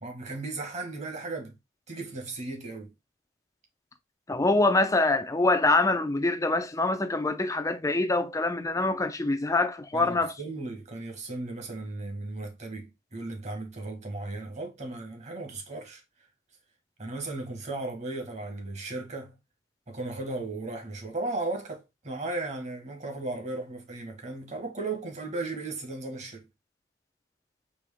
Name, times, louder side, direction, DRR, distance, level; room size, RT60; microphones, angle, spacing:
voice 1, 0.0-1.5 1.9-2.9 9.9-16.0 17.0-19.3 19.9-26.5, right 2 dB, 40° right, 1.5 m, -36 dB
voice 2, 4.3-10.4, left 2 dB, 15° left, 0.5 m, -25 dB
4.5 x 3.0 x 3.5 m
head